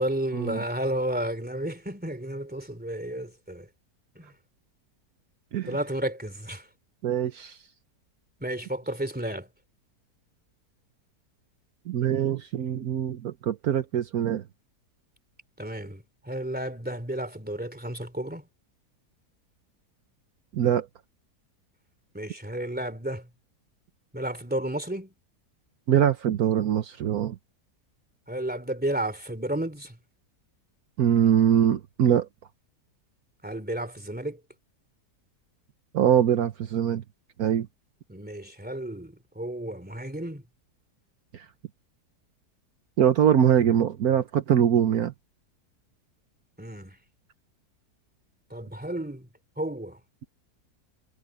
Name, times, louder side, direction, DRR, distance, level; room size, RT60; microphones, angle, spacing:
voice 1, 0.0-3.7 4.1-4.3 5.6-6.7 8.4-9.5 15.6-18.5 22.1-23.3 24.1-25.1 28.3-30.0 33.4-34.4 38.1-40.4 46.6-47.0 48.5-49.3 49.6-50.0, right 1 dB, 5° right, 3.0 m, -32 dB
voice 2, 7.0-7.6 11.9-14.4 20.5-20.9 25.9-27.4 31.0-32.3 35.9-37.0 37.4-37.7 41.3-41.4 43.0-45.1, right 9 dB, 70° right, 1.4 m, -23 dB
omnidirectional pair, 1.7 m